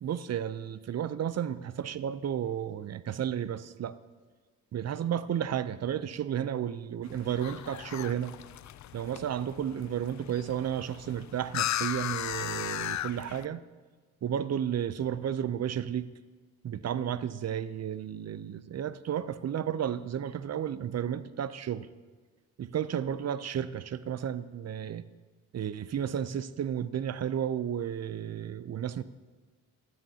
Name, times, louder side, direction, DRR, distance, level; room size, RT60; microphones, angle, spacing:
voice 1, 0.0-4.0 4.7-8.4 8.9-13.6 14.2-16.1 16.6-21.9 22.6-25.0 25.5-29.0, right 9 dB, 45° right, 15 dB, 0.6 m, -32 dB
sound 1, 7.0-13.5, left 12 dB, 50° left, 0.5 m, -37 dB
15.5 x 12.5 x 2.9 m, 1.4 s
supercardioid pair, 60°, 38 cm